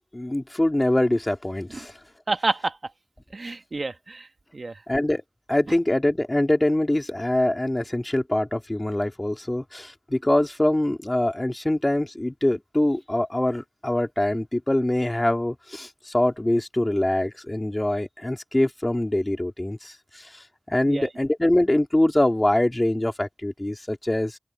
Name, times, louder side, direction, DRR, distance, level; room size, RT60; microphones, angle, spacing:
voice 1, 0.1-1.9 4.9-5.2 5.5-24.4, left 1 dB, 25° left, 3.6 m, -24 dB
voice 2, 2.3-2.8 3.3-4.3 4.5-4.8 20.9-21.1, right 3 dB, 80° right, 1.5 m, -28 dB
open air
wide cardioid pair, 60°, 0 cm